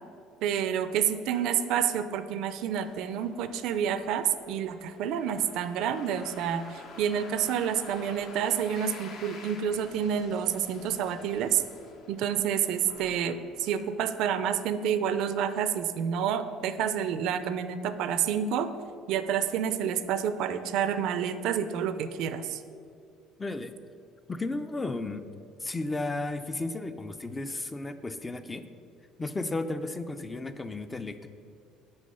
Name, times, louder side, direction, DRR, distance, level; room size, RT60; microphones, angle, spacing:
voice 1, 0.4-11.6 12.1-18.7 19.1-22.6, right 8 dB, 70° right, 11 dB, 0.4 m, -29 dB
sound 1, 2.8-14.0, left 4 dB, 60° left, 0.8 m, -49 dB
voice 2, 23.4-23.7 24.3-25.3 25.6-28.6 29.2-31.3, left 2 dB, 15° left, 10 dB, 0.4 m, -34 dB
6.4 x 4.7 x 5.4 m, 2.4 s
cardioid pair, 115°, 0 cm